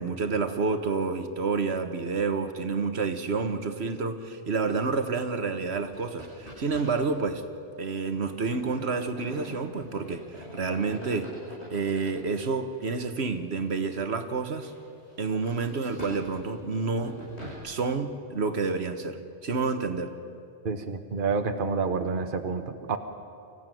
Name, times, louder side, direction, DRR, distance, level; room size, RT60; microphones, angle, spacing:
voice 1, 0.0-7.4 7.8-11.3 11.7-14.7 15.2-17.1 17.6-19.2 19.4-20.1, right 4 dB, 75° right, 8 dB, 1.5 m, -29 dB
sound 1, 5.7-7.1 7.3-7.4 8.1-13.0 13.5-13.6 14.2-17.6, equal, 90° left, 7.9 m, -44 dB
voice 2, 20.6-23.0, right 5 dB, 55° right, 7 dB, 1.2 m, -28 dB
25.0 x 15.0 x 9.2 m, 2.5 s
omnidirectional pair, 1.1 m